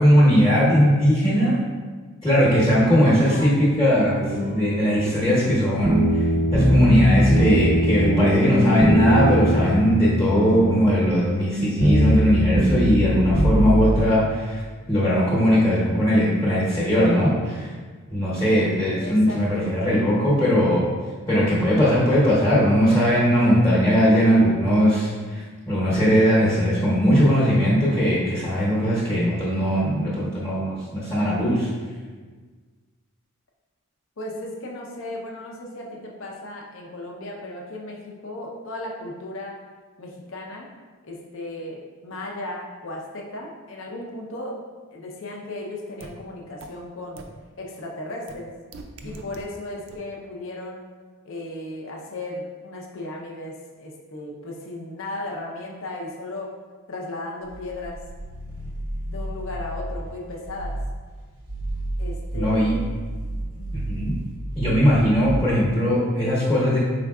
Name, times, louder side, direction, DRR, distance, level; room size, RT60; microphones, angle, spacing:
voice 1, 0.0-1.6 2.2-6.0 6.5-14.6 14.9-17.7 18.1-20.9 21.3-31.7 62.3-62.7 63.7-64.2 64.6-66.8, equal, 15° left, -7 dB, 0.9 m, -19 dB
voice 2, 3.0-3.6 19.0-19.8 34.2-39.6 40.0-40.7 41.0-47.2 47.6-48.5 49.0-50.8 51.2-56.6 56.9-58.0 59.1-60.8 62.0-62.8 63.5-63.8, left 1 dB, 65° left, -1 dB, 0.6 m, -35 dB
sound 1, 4.2-14.0, equal, 10° right, 0.5 m, -21 dB
sound 2, 46.0-46.1 46.6-46.7 47.2-47.3 48.3-48.4 48.7-49.4 49.9-50.0, right 3 dB, 65° right, 0.4 m, -39 dB
sound 3, 57.4-60.1 60.4-61.0 61.4-65.6, right 1 dB, 90° right, 0.8 m, -32 dB
5.0 x 3.6 x 2.3 m, 1.5 s
head